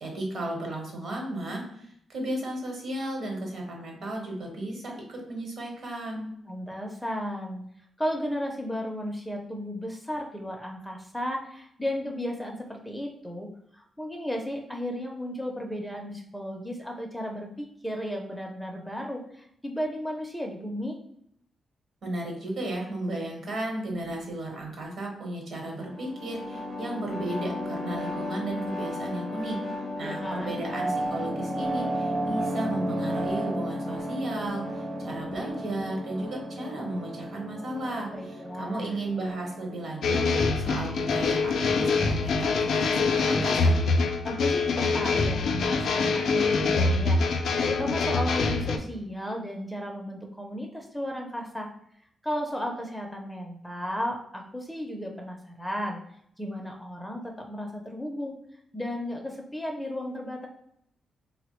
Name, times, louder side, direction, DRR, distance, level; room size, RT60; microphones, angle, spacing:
voice 1, 0.0-6.3 22.0-29.6 30.0-40.2 40.6-43.8, right 1 dB, 65° right, 0 dB, 1.0 m, -34 dB
voice 2, 6.5-7.6 8.0-21.0 30.0-30.6 38.1-39.0 44.2-51.7 52.2-56.0 56.4-58.4 58.7-60.5, equal, 5° left, 1 dB, 0.4 m, -34 dB
sound 1, 25.8-41.2, equal, 45° right, 0.6 m, -34 dB
sound 2, 30.7-33.9 35.3-35.4, right 3 dB, 90° right, 0.9 m, -33 dB
sound 3, 40.0-48.8, left 4 dB, 75° left, 0.3 m, -24 dB
3.5 x 2.0 x 2.9 m, 0.71 s
cardioid pair, 100°, 0 cm